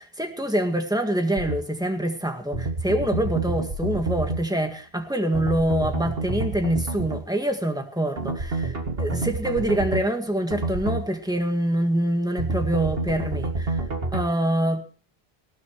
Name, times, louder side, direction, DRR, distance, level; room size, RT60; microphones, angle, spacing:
voice 1, 0.0-13.8 14.1-14.8, right 1 dB, 5° right, 1.9 m, -25 dB
sound 1, 1.4-1.6 2.5-4.4 5.3-7.2 8.2-10.0 10.5-11.0 12.4-14.3, right 2 dB, 70° right, 2.3 m, -28 dB
19.0 x 17.5 x 3.1 m
omnidirectional pair, 1.0 m